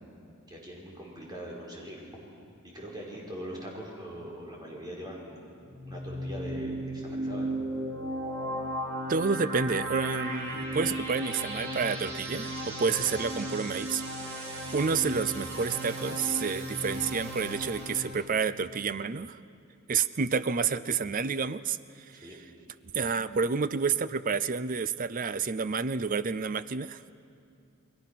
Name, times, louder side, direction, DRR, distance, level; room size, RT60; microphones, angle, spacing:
voice 1, 0.5-2.0 2.6-5.4 5.8-7.6 22.2-22.4, equal, 20° right, -3 dB, 4.9 m, -41 dB
sound 1, 5.6-18.1, right 1 dB, 70° right, 6.0 m, -35 dB
voice 2, 9.1-14.0 14.7-19.4 19.9-21.8 22.1-22.3 22.9-27.1, right 5 dB, 40° right, 14 dB, 0.6 m, -29 dB
29.5 x 21.5 x 6.0 m, 2.5 s
head